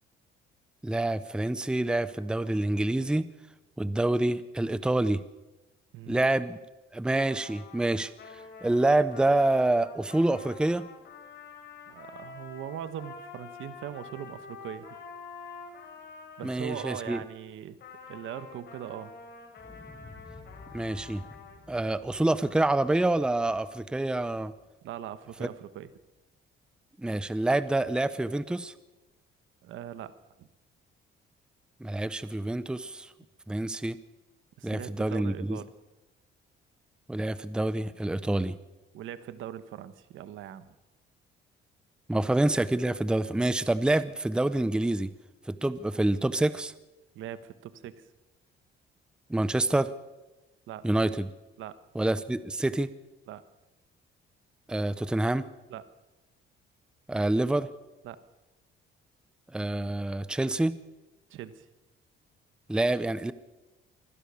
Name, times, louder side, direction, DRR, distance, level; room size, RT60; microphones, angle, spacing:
voice 1, 0.8-3.3 3.8-5.2 6.1-6.6 6.9-8.1 8.6-10.9 16.4-17.2 20.7-21.3 21.7-24.5 27.0-28.7 31.8-33.1 33.5-34.0 34.6-35.6 37.1-38.6 42.1-45.1 45.5-46.7 49.3-49.9 50.8-51.3 52.0-52.9 54.7-55.5 57.1-57.7 59.5-60.7 62.7-63.3, right 2 dB, 5° right, 15 dB, 0.6 m, -27 dB
voice 2, 5.9-6.3 11.9-14.9 16.4-17.8 18.1-19.2 24.8-25.9 29.6-30.5 34.6-35.7 38.9-40.7 47.1-48.1 50.7-50.9 51.6-51.8 53.3-53.4 55.7-55.8 58.0-58.2 61.3-61.7, right 10 dB, 75° right, 13 dB, 1.3 m, -41 dB
Trumpet, 7.1-17.3 17.8-21.6, left 5 dB, 55° left, 5.3 m, -47 dB
Explosion, 19.6-25.6 25.9-26.0, left 2 dB, 15° left, 5.5 m, -53 dB
24.5 x 15.5 x 7.0 m, 1.1 s
cardioid pair, 140°, 20 cm